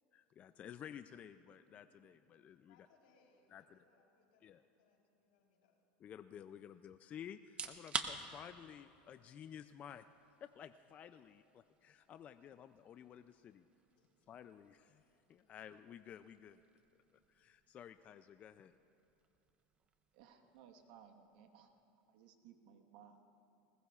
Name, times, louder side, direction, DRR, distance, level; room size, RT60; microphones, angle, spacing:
voice 1, 0.1-2.7 3.5-3.8 4.4-4.6 6.0-10.0 10.4-13.7 14.3-15.0 15.3-16.6 17.3-18.7, left 9 dB, 35° left, 11 dB, 0.3 m, -53 dB
voice 2, 2.7-5.8 14.0-14.1, left 4 dB, 85° left, -1 dB, 3.7 m, -73 dB
sound 1, 7.4-22.3, right 5 dB, 25° right, 0.9 m, -51 dB
voice 3, 20.1-21.7 22.1-23.3, right 8 dB, 75° right, 5 dB, 1.3 m, -61 dB
21.0 x 20.0 x 2.4 m, 2.8 s
supercardioid pair, 125°, 4 cm